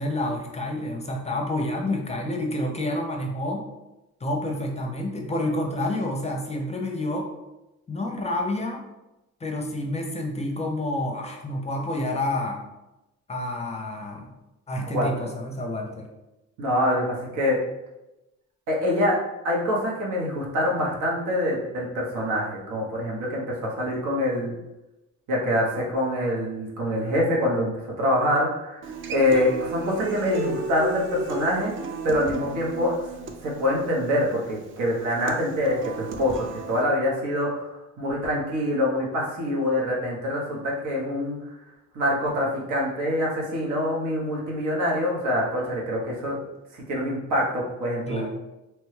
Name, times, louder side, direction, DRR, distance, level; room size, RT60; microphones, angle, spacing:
voice 1, 0.0-3.7 4.2-7.3 7.9-8.8 9.4-12.6 13.3-14.3 14.7-16.1 48.1-48.3, left 1 dB, 20° left, 2 dB, 0.5 m, -29 dB
voice 2, 14.8-15.3 16.6-17.6 18.7-19.2 19.4-24.5 25.3-27.7 28.0-28.8 29.1-31.7 32.0-32.9 33.4-36.4 36.7-41.4 41.9-46.4 46.9-48.3, left 1 dB, 85° right, -3 dB, 1.0 m, -25 dB
Human voice / Acoustic guitar, 28.8-36.8, right 3 dB, 45° right, 0.4 m, -34 dB
3.0 x 2.2 x 3.2 m, 0.97 s
cardioid pair, 90°, 30 cm